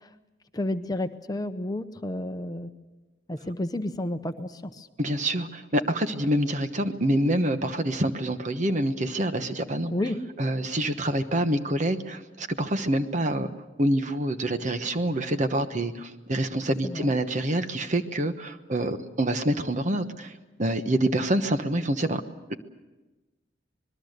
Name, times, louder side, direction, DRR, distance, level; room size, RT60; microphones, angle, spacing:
voice 1, 0.5-2.7 3.3-4.9 9.9-10.2 16.8-17.1, left 1 dB, 20° left, 8 dB, 0.8 m, -31 dB
voice 2, 5.0-9.9 10.4-13.5 13.8-20.3 20.6-22.2, right 1 dB, 40° right, 9 dB, 1.1 m, -26 dB
26.0 x 21.0 x 6.7 m, 1.1 s
head